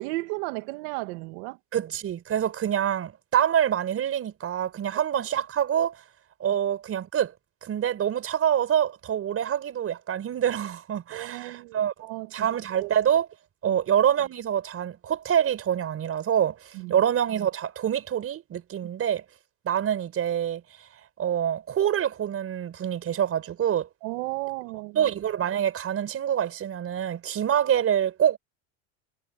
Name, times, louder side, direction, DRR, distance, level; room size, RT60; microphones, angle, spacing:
voice 1, 0.0-1.6 11.1-12.5 12.8-12.9 13.6-13.8 16.7-17.0 24.0-25.1, right 24 dB, 75° right, 2.4 m, -34 dB
voice 2, 1.7-6.0 6.4-7.3 7.6-11.9 12.3-13.3 13.6-19.2 19.6-20.6 21.2-23.9 24.9-28.4, right 9 dB, 40° right, 4.9 m, -26 dB
supercardioid pair, 105°, 35 cm